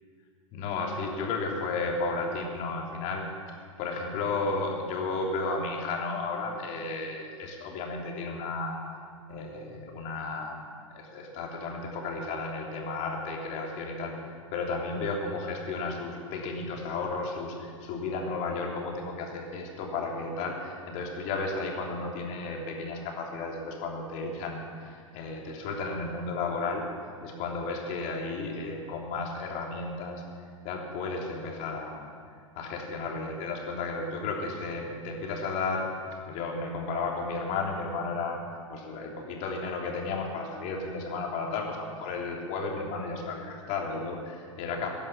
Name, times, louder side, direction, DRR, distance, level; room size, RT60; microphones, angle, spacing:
voice 1, 0.5-3.2 3.5-8.8 9.3-14.1 14.5-26.8 27.2-30.2 30.6-32.1 32.6-35.9 36.3-38.4 38.7-44.9, left 3 dB, 45° left, 0 dB, 3.3 m, -33 dB
16.0 x 11.0 x 7.1 m, 2.1 s
hypercardioid pair, 100°, 17 cm